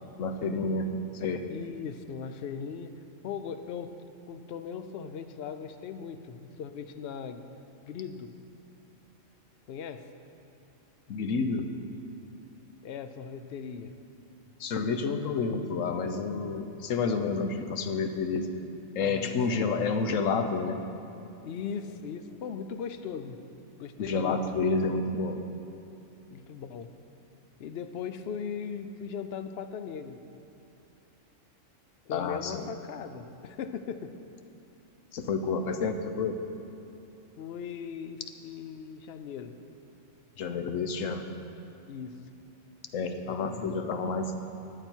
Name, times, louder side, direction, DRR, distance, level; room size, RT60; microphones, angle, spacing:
voice 1, 0.2-0.9 1.1-1.5 11.1-11.7 14.6-18.5 19.0-20.8 24.0-25.4 32.1-32.7 35.1-36.4 40.4-41.2 42.9-44.4, left 4 dB, 75° left, 7 dB, 1.1 m, -29 dB
voice 2, 1.5-2.9 3.2-3.9 4.3-7.4 7.9-8.3 9.7-10.0 12.8-13.9 19.0-19.6 21.4-23.4 23.8-24.4 26.3-26.9 27.6-30.2 32.0-34.1 37.4-39.5 41.9-42.2 43.2-44.1, left 6 dB, 60° left, 9 dB, 0.8 m, -39 dB
14.0 x 9.7 x 4.5 m, 2.8 s
omnidirectional pair, 1.4 m